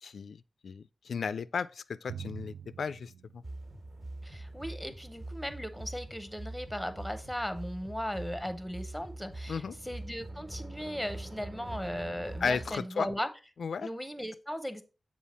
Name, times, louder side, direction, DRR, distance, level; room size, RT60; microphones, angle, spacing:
voice 1, 0.0-3.4 9.5-9.8 12.4-13.1 13.6-13.9, left 6 dB, 80° left, 0.3 m, -35 dB
Drum, 2.1-4.5, right 8 dB, 85° right, 0.4 m, -46 dB
sound 1, 3.4-12.8, right 2 dB, 50° right, 1.4 m, -43 dB
voice 2, 4.2-13.3 13.8-14.8, equal, ahead, 0.6 m, -37 dB
7.4 x 4.3 x 4.2 m
wide cardioid pair, 165°, 0 cm